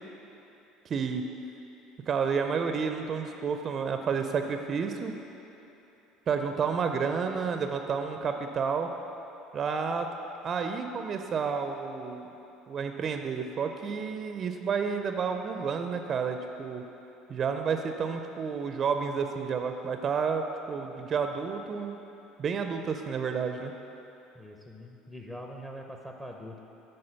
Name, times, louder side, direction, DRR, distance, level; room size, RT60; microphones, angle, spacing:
voice 1, 0.9-1.2 2.1-5.1 6.3-8.9 9.5-10.1 10.4-12.3 12.7-16.8 17.3-22.0 22.4-23.7, right 6 dB, 45° right, 6 dB, 0.4 m, -30 dB
voice 2, 24.3-26.6, equal, 10° left, 2 dB, 0.6 m, -43 dB
8.8 x 3.9 x 5.6 m, 3.0 s
hypercardioid pair, 75°, 0 cm